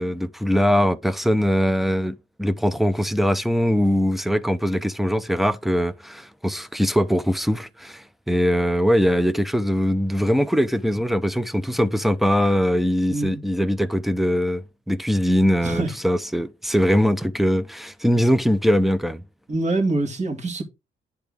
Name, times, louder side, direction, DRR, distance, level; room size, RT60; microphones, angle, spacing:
voice 1, 0.0-19.2, equal, ahead, 0.6 m, -21 dB
voice 2, 13.1-13.4 15.6-15.9 19.5-20.6, right 2 dB, 35° right, 2.1 m, -24 dB
10.0 x 3.5 x 3.5 m
cardioid pair, 90°, 20 cm